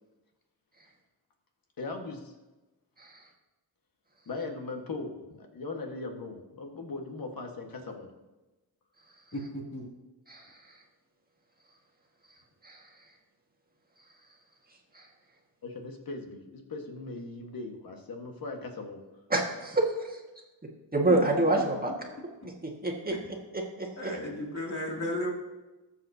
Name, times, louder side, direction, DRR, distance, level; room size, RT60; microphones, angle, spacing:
voice 1, 1.8-2.3 4.3-8.1 15.6-19.0, left 3 dB, 55° left, 3 dB, 1.6 m, -39 dB
voice 2, 9.3-9.9 21.1-21.2 24.0-25.3, left 1 dB, 40° left, -2 dB, 2.7 m, -34 dB
voice 3, 19.3-19.9 20.9-21.9 22.4-23.1 23.5-24.1, right 2 dB, 20° right, 0 dB, 1.7 m, -27 dB
20.0 x 7.6 x 2.8 m, 1.1 s
wide cardioid pair, 135°, 43 cm